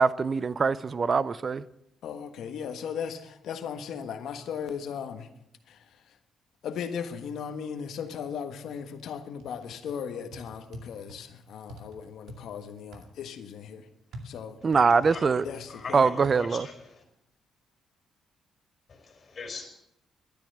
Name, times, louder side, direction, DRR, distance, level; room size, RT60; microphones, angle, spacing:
voice 1, 0.0-1.6 14.6-15.4 15.9-16.6, right 5 dB, 40° right, 0.5 m, -23 dB
voice 2, 2.0-5.3 5.7-6.2 6.6-13.9 14.2-14.6 15.4-16.1, left 7 dB, 75° left, 1.4 m, -37 dB
sound 1, 9.4-9.9 10.3-11.2 11.7-12.4 12.9-13.1 14.1-15.9 16.2-16.4, right 1 dB, 75° right, 2.2 m, -45 dB
voice 3, 15.7-17.0 18.9-19.7, left 4 dB, 45° left, 4.2 m, -41 dB
12.0 x 10.0 x 7.9 m
cardioid pair, 90°, 0 cm